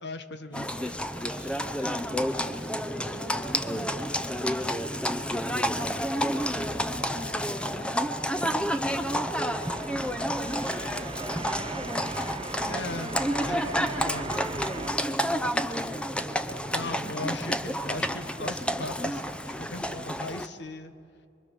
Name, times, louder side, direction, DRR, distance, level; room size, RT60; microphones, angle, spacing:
voice 1, 0.0-0.7 12.7-13.1 13.4-14.3 16.7-20.9, left 2 dB, 65° left, 10 dB, 1.2 m, -38 dB
Livestock farm animals working animals, 0.5-20.5, equal, 5° left, 0.7 m, -30 dB
voice 2, 0.7-5.5 6.5-11.8 12.5-16.8, right 1 dB, 25° left, -3 dB, 6.8 m, -46 dB
sound 1, 9.4-14.9, right 4 dB, 30° right, 0.5 m, -39 dB
24.0 x 23.0 x 6.8 m, 2.7 s
head